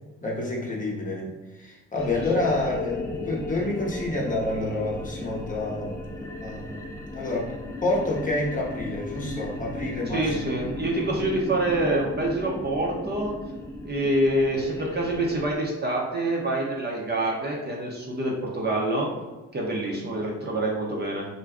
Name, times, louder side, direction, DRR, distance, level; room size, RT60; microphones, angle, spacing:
voice 1, 0.2-6.0 6.4-6.7 7.1-7.5 7.8-10.3, left 2 dB, 25° left, -3 dB, 0.8 m, -28 dB
sound 1, 2.0-15.6, left 2 dB, 10° left, 0.4 m, -35 dB
voice 2, 10.1-13.3 13.8-19.1 19.5-21.3, right 1 dB, 35° right, -2 dB, 0.7 m, -26 dB
2.5 x 2.2 x 3.5 m, 1.1 s
cardioid pair, 90°, 30 cm